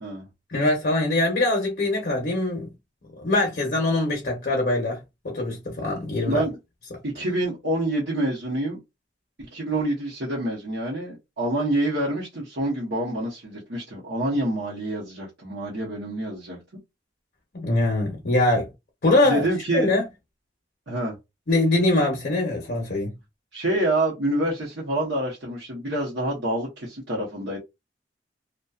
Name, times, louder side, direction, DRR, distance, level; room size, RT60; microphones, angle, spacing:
voice 1, 0.5-2.7 3.2-5.0 5.2-6.4 17.5-18.7 19.0-19.5 19.7-20.0 21.5-23.1, left 2 dB, 55° left, 0.7 m, -23 dB
voice 2, 6.2-6.6 7.0-8.8 9.4-16.6 19.2-19.9 20.9-21.1 23.5-27.6, right 1 dB, 85° right, 0.8 m, -27 dB
2.6 x 2.2 x 2.3 m
head